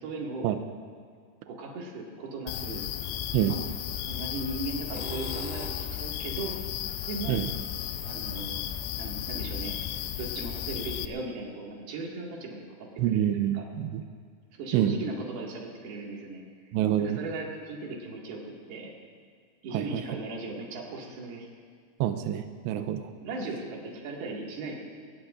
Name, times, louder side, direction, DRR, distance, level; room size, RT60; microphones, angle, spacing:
voice 1, 0.0-0.5 1.5-2.8 3.5-3.6 4.1-6.6 7.1-7.4 8.1-8.6 8.9-9.7 10.2-13.2 13.5-13.6 14.5-16.4 17.0-18.9 19.6-21.5 23.2-24.8, right 3 dB, 60° right, -2 dB, 3.7 m, -37 dB
sound 1, 2.5-11.1, left 10 dB, 80° left, 2.6 m, -34 dB
sound 2, 3.7-3.9 4.7-6.0 8.6-8.7 9.5-9.6 10.0-10.1 10.4-10.5, equal, 5° right, 1.0 m, -43 dB
voice 2, 13.0-14.0 14.7-14.9 16.7-17.2 19.7-20.0 22.0-23.1, right 11 dB, 90° right, 8 dB, 2.5 m, -27 dB
23.0 x 19.0 x 2.6 m, 2.1 s
omnidirectional pair, 5.6 m